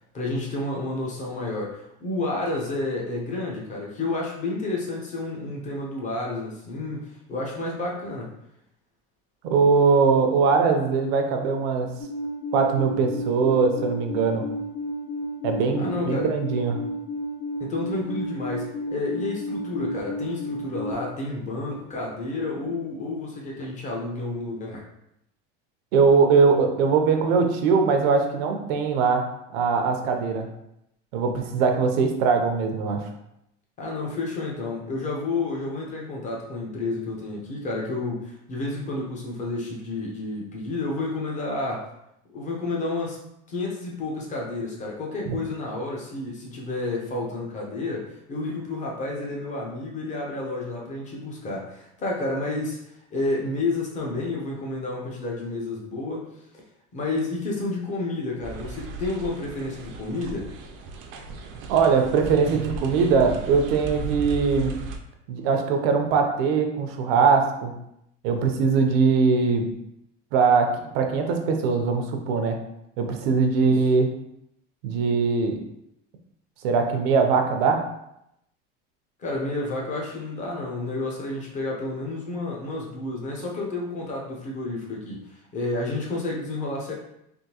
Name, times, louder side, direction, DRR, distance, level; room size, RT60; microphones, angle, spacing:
voice 1, 0.1-8.3 15.8-16.3 17.6-24.8 33.8-41.9 42.3-43.2 43.5-52.8 53.1-56.3 56.9-60.5 73.6-73.8 79.2-86.9, left 2 dB, 25° left, -2 dB, 0.7 m, -30 dB
voice 2, 9.4-11.9 12.5-14.5 15.4-16.8 25.9-29.3 29.5-30.5 31.1-33.1 45.3-45.4 61.7-64.8 65.3-67.7 68.2-69.7 70.3-72.6 73.0-74.1 74.8-75.6 76.6-77.9, right 5 dB, 90° right, 4 dB, 0.7 m, -21 dB
Alarm, 12.0-20.9, equal, 65° left, 1.0 m, -32 dB
sound 1, 58.4-65.0, right 3 dB, 45° right, 0.4 m, -36 dB
3.6 x 2.6 x 2.8 m, 0.81 s
cardioid pair, 165°, 29 cm